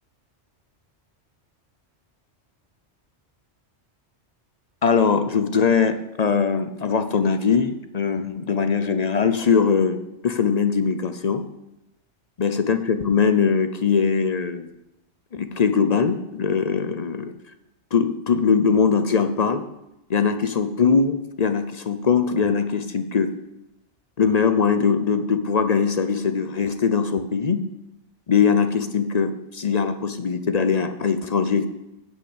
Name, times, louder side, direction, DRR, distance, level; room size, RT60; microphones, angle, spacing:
voice 1, 4.8-11.4 12.4-14.7 15.3-17.3 17.9-19.6 20.1-23.3 24.2-27.6 28.3-31.7, left 6 dB, 45° left, 9 dB, 0.6 m, -21 dB
9.7 x 5.8 x 8.0 m, 0.89 s
omnidirectional pair, 1.2 m